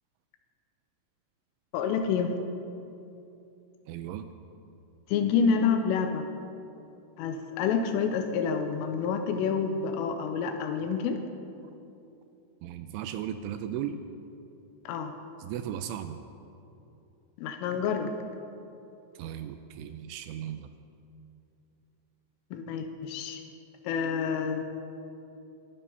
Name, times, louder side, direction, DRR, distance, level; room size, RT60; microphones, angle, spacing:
voice 1, 1.7-2.3 5.1-6.3 7.2-11.2 14.9-15.1 17.4-18.1 22.5-23.4 23.8-24.6, left 6 dB, 80° left, 6 dB, 3.4 m, -28 dB
voice 2, 3.9-4.3 12.6-14.0 15.4-16.2 19.2-20.7, right 10 dB, 85° right, 9 dB, 2.9 m, -36 dB
22.5 x 11.5 x 5.6 m, 2.8 s
omnidirectional pair, 5.9 m